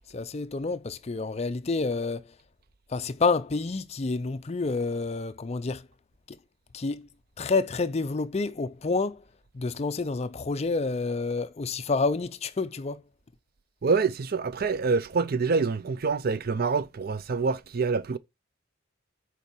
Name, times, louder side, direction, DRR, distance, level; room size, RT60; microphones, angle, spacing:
voice 1, 0.1-2.3 2.9-5.9 6.3-6.4 6.7-7.1 7.4-9.2 9.5-13.0, left 3 dB, 35° left, 0.5 m, -29 dB
voice 2, 13.8-18.2, right 4 dB, 50° right, 0.5 m, -26 dB
6.8 x 4.5 x 6.0 m
head